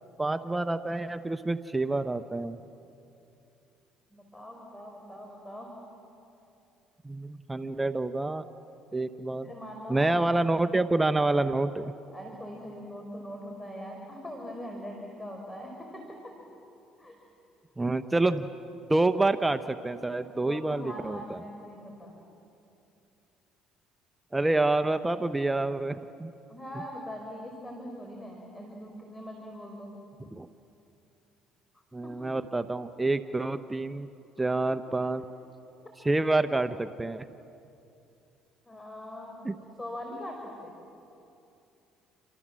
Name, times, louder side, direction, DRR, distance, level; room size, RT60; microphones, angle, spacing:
voice 1, 0.2-2.6 7.0-8.5 8.9-9.5 9.9-11.9 17.8-18.5 18.9-21.2 24.3-26.3 30.3-30.5 31.9-34.1 34.4-35.2 36.0-37.3 39.4-39.5, right 2 dB, 15° right, 10 dB, 0.9 m, -27 dB
voice 2, 4.1-5.8 9.4-10.2 12.1-16.4 17.0-17.2 20.2-22.2 26.5-30.0 32.0-32.1 34.4-34.8 38.7-40.7, equal, 10° left, 1 dB, 5.2 m, -42 dB
29.5 x 26.0 x 7.6 m, 2.8 s
supercardioid pair, 80°, 0 cm